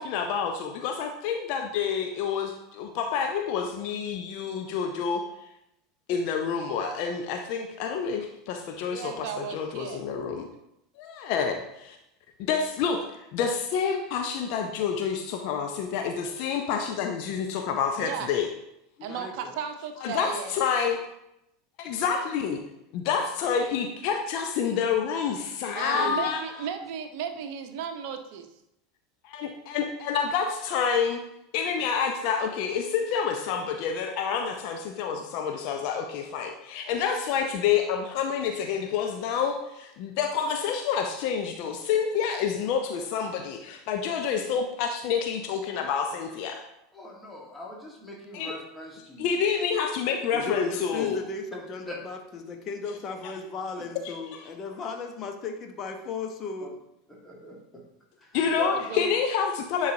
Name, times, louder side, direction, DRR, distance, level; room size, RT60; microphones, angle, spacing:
voice 1, 0.0-5.2 6.1-10.5 11.0-12.0 12.4-13.0 13.3-18.5 20.0-21.0 21.8-22.6 22.9-26.5 29.2-31.2 31.5-46.6 48.3-48.5 49.2-51.2 54.0-54.1 58.3-59.9, left 7 dB, 50° left, 4 dB, 0.6 m, -28 dB
voice 2, 8.9-10.0 18.0-18.3 19.0-20.5 25.7-28.5 58.6-59.1, right 7 dB, 55° right, 7 dB, 0.7 m, -35 dB
voice 3, 19.0-19.6 50.3-56.7, left 4 dB, 35° left, 4 dB, 1.0 m, -36 dB
voice 4, 25.8-26.4 46.9-49.3 51.9-52.0 53.7-53.8 56.6-56.7 57.1-57.8 58.2-58.4, equal, 10° left, -3 dB, 1.7 m, -42 dB
10.0 x 4.8 x 2.8 m, 0.83 s
figure-of-eight pair, 80°, 0 cm